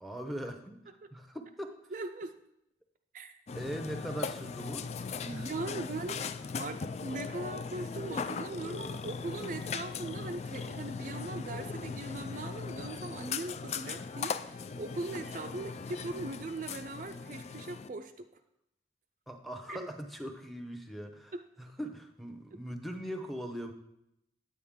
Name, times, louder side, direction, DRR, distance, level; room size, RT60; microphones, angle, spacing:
voice 1, 0.0-1.9 3.5-4.9 5.3-5.5 15.6-15.7 19.3-23.7, equal, ahead, 6 dB, 0.7 m, -41 dB
voice 2, 1.9-2.3 3.1-3.4 5.3-6.2 6.6-18.3 19.7-19.9, right 2 dB, 45° right, 7 dB, 0.4 m, -40 dB
Burping eructation, 3.5-17.9, left 5 dB, 35° left, 0.3 m, -39 dB
9.3 x 8.4 x 3.7 m, 0.80 s
head